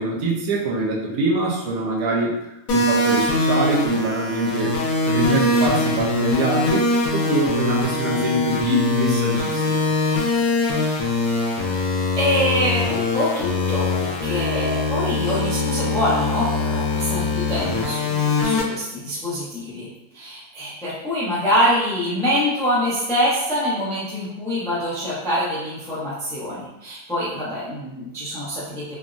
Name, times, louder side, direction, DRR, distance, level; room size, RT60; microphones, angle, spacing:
voice 1, 0.0-2.3 2.7-4.7 5.0-9.9, right 1 dB, 75° right, -3 dB, 1.1 m, -23 dB
sound 1, 2.7-18.6, left 2 dB, 80° left, 1.1 m, -22 dB
voice 2, 12.2-19.9 20.1-29.0, equal, 5° left, -8 dB, 0.4 m, -25 dB
3.4 x 2.0 x 2.5 m, 0.89 s
omnidirectional pair, 1.5 m